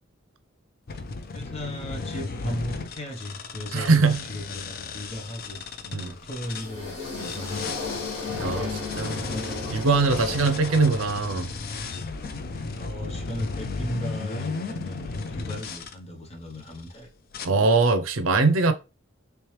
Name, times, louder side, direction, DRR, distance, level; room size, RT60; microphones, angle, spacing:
sound 1, 0.9-6.7 7.2-15.9 16.6-16.9 17.3-17.5, left 4 dB, 45° left, 0.4 m, -35 dB
voice 1, 1.3-7.8 8.2-9.6 10.2-10.5 12.8-17.1, equal, 30° left, 0.8 m, -37 dB
voice 2, 3.7-4.2 5.9-6.1 8.4-8.7 9.0-9.2 9.7-11.5 17.4-18.7, right 3 dB, 75° right, 0.6 m, -21 dB
sound 2, 6.5-11.6, left 3 dB, 75° left, 1.9 m, -35 dB
3.2 x 3.2 x 3.1 m
head